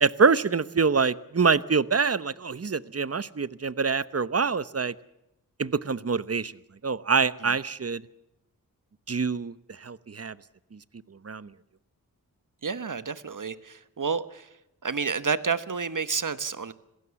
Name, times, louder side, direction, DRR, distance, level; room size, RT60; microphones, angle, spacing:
voice 1, 0.0-4.9 5.6-6.5 6.8-8.0 9.1-10.4 10.7-10.8 11.2-11.5, right 5 dB, 40° right, 17 dB, 0.9 m, -25 dB
voice 2, 12.6-14.5 14.8-16.7, right 5 dB, 60° right, 14 dB, 1.3 m, -30 dB
26.5 x 16.5 x 7.1 m, 0.87 s
wide cardioid pair, 70°, 36 cm